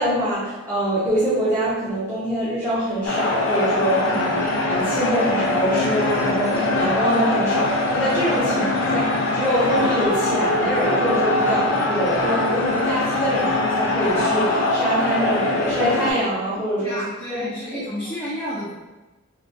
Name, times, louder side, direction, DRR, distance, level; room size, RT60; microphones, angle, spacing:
voice 1, 0.0-17.0 17.3-17.4 17.7-17.8, equal, 15° right, -13 dB, 0.8 m, -24 dB
sound 1, 3.0-16.1, left 2 dB, 75° left, 0.5 m, -22 dB
voice 2, 16.7-18.7, equal, 10° left, -9 dB, 0.5 m, -31 dB
3.8 x 2.3 x 2.6 m, 1.1 s
head